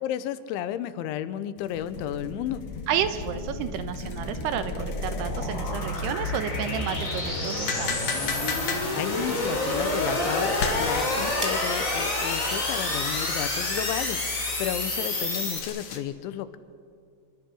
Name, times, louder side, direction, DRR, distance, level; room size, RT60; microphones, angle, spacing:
voice 1, 0.0-2.7 9.0-16.6, left 11 dB, 85° left, 13 dB, 3.3 m, -32 dB
sound 1, 1.6-16.0, left 5 dB, 50° left, 2.5 m, -39 dB
sound 2, 1.7-15.6, left 2 dB, 20° left, 3.6 m, -29 dB
voice 2, 2.9-8.0, right 9 dB, 75° right, 10 dB, 2.7 m, -31 dB
sound 3, 9.4-14.9, left 5 dB, 5° right, 3.2 m, -41 dB
27.0 x 24.0 x 6.3 m, 2.4 s
omnidirectional pair, 5.3 m